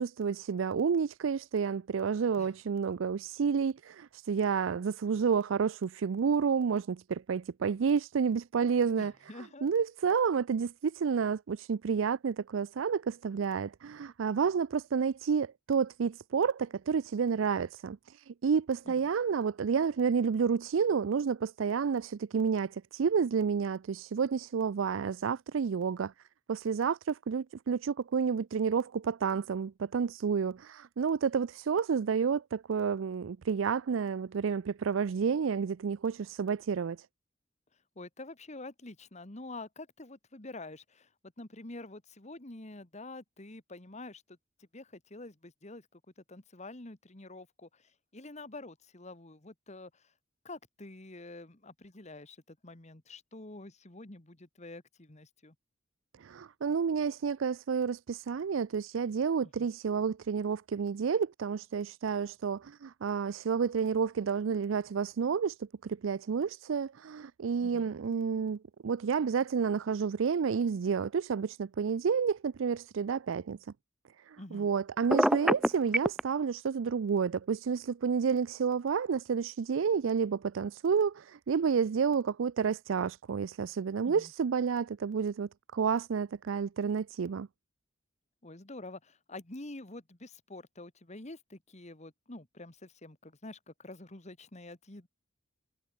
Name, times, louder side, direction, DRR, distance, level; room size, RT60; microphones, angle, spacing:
voice 1, 0.0-9.1 9.6-26.1 26.5-37.0 56.2-73.6 74.3-87.5, right 6 dB, 85° right, 0.4 m, -30 dB
voice 2, 9.0-9.7 18.9-19.0 38.0-41.1 41.4-44.4 44.7-50.1 50.4-55.6 59.4-59.7 67.6-67.9 74.4-74.7 84.0-84.3 88.4-95.1, left 2 dB, 35° left, 1.8 m, -47 dB
Telephone, 75.1-76.2, right 1 dB, 5° right, 0.4 m, -24 dB
head